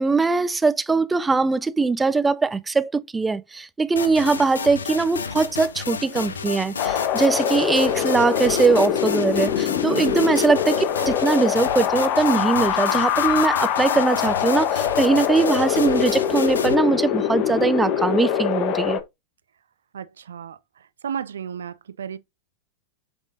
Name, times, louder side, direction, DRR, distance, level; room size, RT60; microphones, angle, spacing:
voice 1, 0.0-19.0, right 4 dB, 10° right, 0.5 m, -21 dB
sound 1, 4.0-16.8, left 5 dB, 70° left, 0.8 m, -31 dB
Wind, 6.8-19.0, left 10 dB, 40° left, 1.0 m, -23 dB
voice 2, 9.8-10.3 19.9-20.6 21.0-22.2, right 8 dB, 65° right, 0.6 m, -33 dB
8.0 x 5.4 x 2.7 m
figure-of-eight pair, 90°, 0 cm